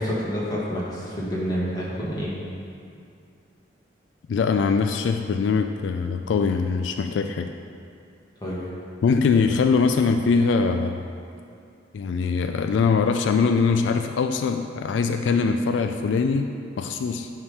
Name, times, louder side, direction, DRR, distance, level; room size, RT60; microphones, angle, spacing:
voice 1, 0.0-2.3 8.4-8.6, equal, 20° left, -7 dB, 1.6 m, -28 dB
voice 2, 4.3-7.5 9.0-11.0 11.9-17.3, left 5 dB, 75° left, 7 dB, 0.3 m, -22 dB
9.8 x 3.6 x 5.5 m, 2.5 s
head